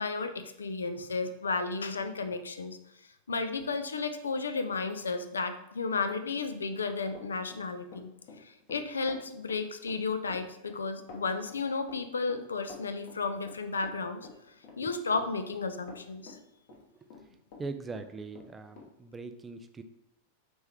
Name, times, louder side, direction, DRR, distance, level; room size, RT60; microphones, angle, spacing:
voice 1, 0.0-2.8 3.3-8.1 8.4-14.2 14.8-16.4, left 4 dB, 70° left, 9 dB, 0.4 m, -33 dB
Run, 6.5-17.7 17.9-18.9, left 4 dB, 45° left, 0.9 m, -50 dB
voice 2, 17.6-19.8, right 3 dB, 15° right, 9 dB, 0.3 m, -41 dB
4.3 x 3.4 x 3.3 m, 0.80 s
figure-of-eight pair, 90°, 0 cm